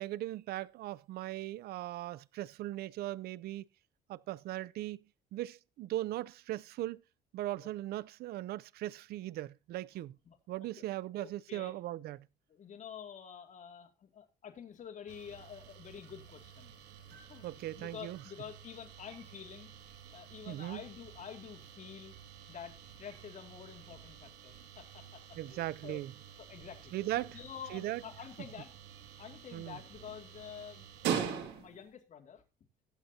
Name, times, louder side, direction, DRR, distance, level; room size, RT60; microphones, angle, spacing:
voice 1, 0.0-3.6 4.1-5.0 5.3-7.0 7.3-10.1 10.5-12.2 17.4-18.2 20.5-20.8 25.4-26.1 26.9-27.3 27.7-28.0 29.5-29.7, right 15 dB, 70° right, 0.5 m, -38 dB
voice 2, 11.2-11.7 12.5-16.7 17.1-19.7 20.1-22.2 22.5-26.0 26.4-28.7 29.2-32.4, left 8 dB, 45° left, 2.3 m, -49 dB
sound 1, 15.1-31.9, right 8 dB, 85° right, 2.4 m, -45 dB
21.0 x 7.7 x 2.8 m
cardioid pair, 110°, 17 cm